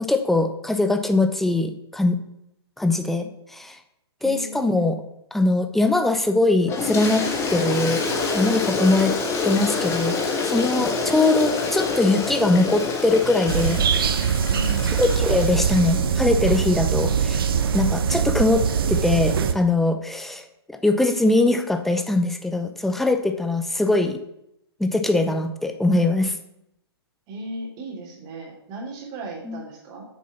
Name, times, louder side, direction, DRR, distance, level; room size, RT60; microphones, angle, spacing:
voice 1, 0.0-2.2 2.8-3.8 4.2-5.0 5.3-8.0 8.3-9.1 9.4-10.2 10.4-13.9 15.0-17.4 17.7-24.2 24.8-26.3 29.4-29.6, left 2 dB, ahead, 7 dB, 0.6 m, -22 dB
voice 2, 4.2-4.9 10.7-10.9 14.5-15.0 27.3-30.1, right 1 dB, 30° right, 0 dB, 2.9 m, -36 dB
Toilet flush, 6.7-16.0, left 4 dB, 20° left, 1.4 m, -27 dB
sound 1, 13.5-19.5, right 7 dB, 60° right, 0.9 m, -22 dB
7.6 x 6.5 x 5.6 m, 0.79 s
figure-of-eight pair, 125°, 14 cm